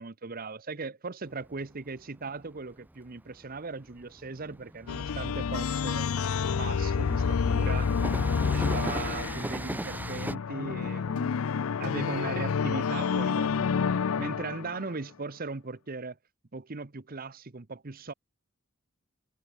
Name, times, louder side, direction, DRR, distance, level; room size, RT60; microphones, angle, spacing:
voice 1, 0.0-6.1 6.5-7.9 8.3-11.3 11.8-16.2 16.5-18.1, right 3 dB, 40° right, 0.9 m, -38 dB
Train, 1.2-10.3, right 1 dB, 10° right, 0.5 m, -39 dB
sound 1, 4.9-14.9, left 6 dB, 70° left, 0.5 m, -29 dB
head